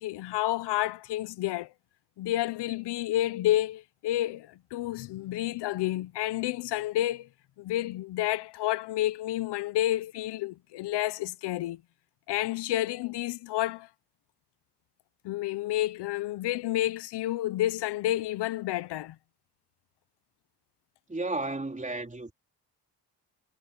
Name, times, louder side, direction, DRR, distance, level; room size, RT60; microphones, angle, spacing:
voice 1, 0.0-1.7 2.2-7.3 7.6-11.8 12.3-13.9 15.2-19.2, left 14 dB, 85° left, 0.9 m, -30 dB
voice 2, 21.1-22.3, right 2 dB, 20° right, 4.2 m, -33 dB
cardioid pair, 75°, 40 cm